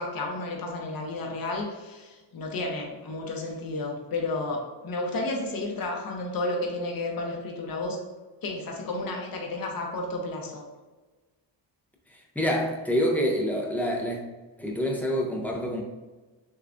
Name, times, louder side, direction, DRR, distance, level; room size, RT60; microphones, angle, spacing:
voice 1, 0.0-8.0 8.4-10.6, left 2 dB, 50° left, 0 dB, 0.8 m, -32 dB
voice 2, 12.4-14.2 14.6-15.8, equal, 5° left, -1 dB, 0.5 m, -26 dB
6.6 x 2.3 x 2.5 m, 1.2 s
wide cardioid pair, 170°, 45 cm